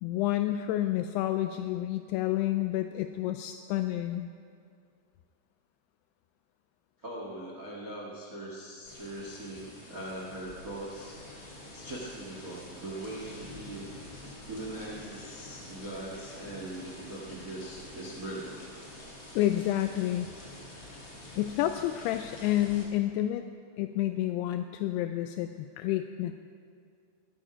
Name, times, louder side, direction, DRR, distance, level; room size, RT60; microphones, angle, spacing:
voice 1, 0.0-4.3 19.4-20.3 21.4-23.5 23.8-26.4, left 13 dB, 85° left, 8 dB, 2.5 m, -29 dB
voice 2, 7.0-11.2 11.7-13.9 14.5-18.6, right 1 dB, 40° right, -3 dB, 1.2 m, -41 dB
sound 1, 8.8-22.9, left 1 dB, 40° left, 3.4 m, -47 dB
17.5 x 13.0 x 5.0 m, 2.3 s
omnidirectional pair, 4.8 m